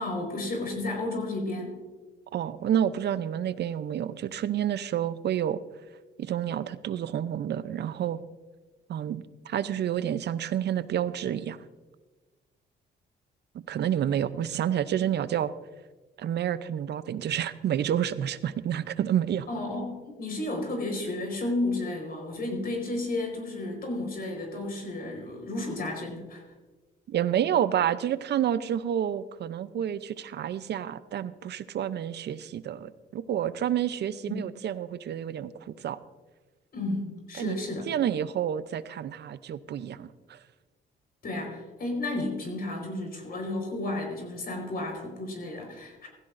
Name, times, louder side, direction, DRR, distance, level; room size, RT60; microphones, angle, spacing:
voice 1, 0.0-1.8 19.5-26.4 34.2-34.4 36.7-37.8 41.2-46.1, left 2 dB, 50° left, 1 dB, 4.5 m, -32 dB
voice 2, 2.3-5.6 6.2-8.2 8.9-11.6 13.5-15.5 16.2-19.5 27.1-36.0 37.4-37.6 37.9-40.4, right 10 dB, 60° right, 15 dB, 0.6 m, -29 dB
16.5 x 15.0 x 2.6 m, 1.3 s
cardioid pair, 90°, 20 cm